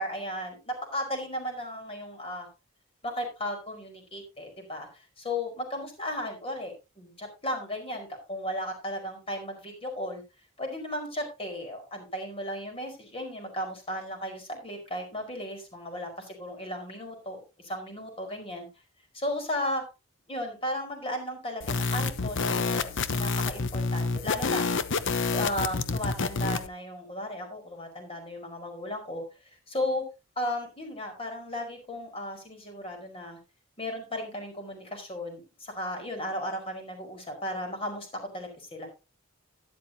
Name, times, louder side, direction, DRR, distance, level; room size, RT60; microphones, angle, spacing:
voice 1, 0.0-2.5 3.0-10.2 10.6-18.7 19.1-19.8 20.3-24.7 25.3-29.2 29.7-30.0 30.3-33.4 33.8-38.1 38.3-38.9, left 1 dB, 30° left, 3 dB, 5.0 m, -35 dB
sound 1, 21.6-26.7, left 4 dB, 65° left, 0.9 m, -28 dB
12.5 x 11.0 x 2.8 m, 0.27 s
head